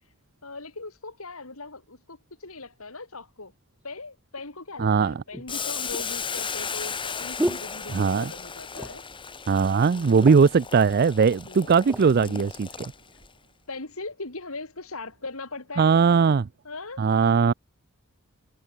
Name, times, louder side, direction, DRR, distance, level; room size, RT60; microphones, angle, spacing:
voice 1, 0.4-3.5 3.8-9.0 9.9-10.2 11.2-12.4 13.7-16.0 16.6-17.0, left 3 dB, 75° left, 3.5 m, -40 dB
sound 1, 4.4-4.5 5.3-8.4 8.7-9.2 9.5-9.6 9.9-10.6 11.3-12.1 12.7-12.9, equal, 5° right, 1.4 m, -34 dB
voice 2, 4.8-5.2 7.9-8.3 9.5-12.7 15.8-16.5 17.0-17.5, right 5 dB, 45° right, 0.4 m, -20 dB
Boiling, 5.5-13.3, left 6 dB, 25° left, 2.4 m, -36 dB
head